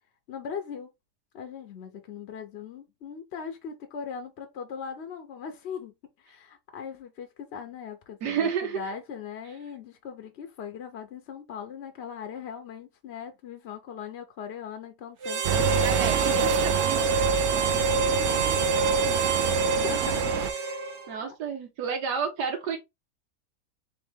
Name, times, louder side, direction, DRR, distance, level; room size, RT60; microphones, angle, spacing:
voice 1, 0.3-0.9 1.3-16.5 17.5-18.6 18.9-19.2 19.5-20.8 21.2-21.4, left 7 dB, 60° left, 0.7 m, -40 dB
voice 2, 8.2-8.8 21.1-22.8, right 6 dB, 90° right, 1.6 m, -29 dB
Harmonica, 15.2-21.2, right 4 dB, 50° right, 1.1 m, -26 dB
sound 1, 15.4-20.5, right 9 dB, 70° right, 0.7 m, -28 dB
3.7 x 3.3 x 3.5 m
omnidirectional pair, 1.7 m